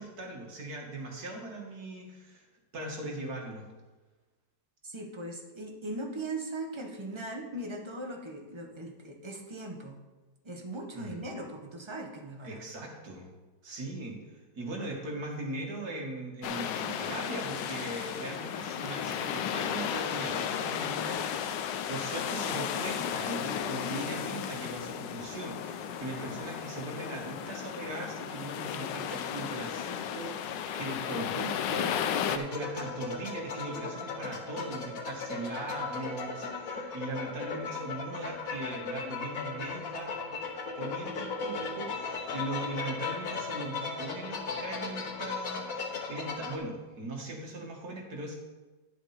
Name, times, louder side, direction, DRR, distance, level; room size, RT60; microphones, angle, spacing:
voice 1, 0.0-2.5 2.7-3.7 10.9-11.2 12.4-13.3 13.6-40.3 40.8-48.3, right 2 dB, 60° right, 0 dB, 2.4 m, -39 dB
voice 2, 4.8-10.0 10.4-12.6, right 2 dB, 20° right, 2 dB, 1.1 m, -39 dB
sound 1, 16.4-32.4, left 8 dB, 90° left, 1.3 m, -34 dB
sound 2, 32.4-46.6, left 4 dB, 55° left, 1.4 m, -37 dB
10.5 x 7.6 x 4.3 m, 1.2 s
omnidirectional pair, 1.9 m